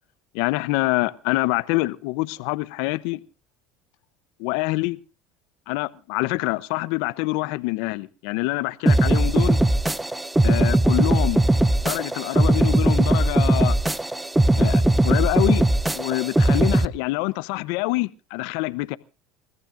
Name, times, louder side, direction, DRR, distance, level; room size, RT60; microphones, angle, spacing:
voice 1, 0.3-3.2 4.4-5.0 5.7-9.6 10.4-11.4 11.8-13.8 14.6-15.7 15.9-19.0, left 21 dB, 70° left, 0.7 m, -26 dB
sound 1, 8.9-16.9, right 1 dB, 10° right, 0.7 m, -19 dB
29.5 x 14.5 x 2.5 m
supercardioid pair, 90°, 0 cm